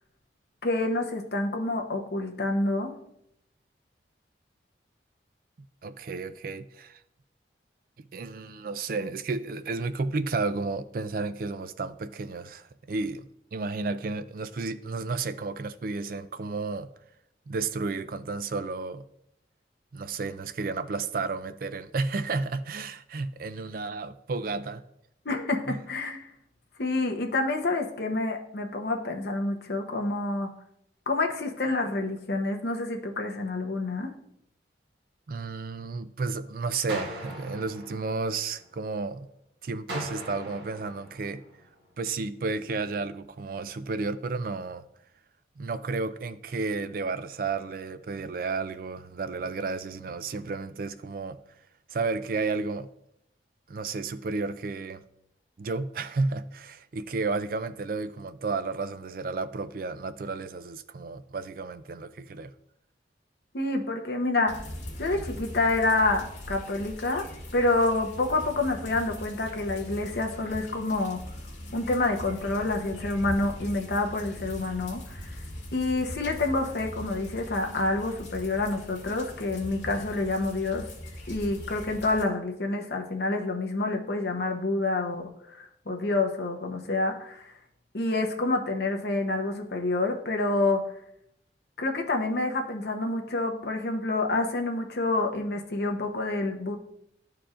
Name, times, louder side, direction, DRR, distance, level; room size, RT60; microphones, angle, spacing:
voice 1, 0.6-2.9 25.2-26.2 26.8-30.5 31.1-34.1 63.5-64.6 65.0-67.3 67.5-71.2 71.7-75.3 75.7-80.9 81.3-87.5 87.9-90.8 91.8-96.8, left 2 dB, 60° left, 0.9 m, -28 dB
voice 2, 5.8-7.0 8.1-16.9 17.5-19.0 19.9-24.8 25.7-25.8 35.3-39.3 39.6-41.4 42.0-44.8 45.6-51.4 51.9-52.9 53.7-55.0 55.6-62.5, right 3 dB, 50° right, 0.4 m, -32 dB
sound 1, 36.9-38.9 39.9-41.9, right 1 dB, 75° right, 1.6 m, -40 dB
sound 2, 64.5-82.2, equal, 85° left, 2.0 m, -41 dB
11.5 x 4.6 x 2.5 m
head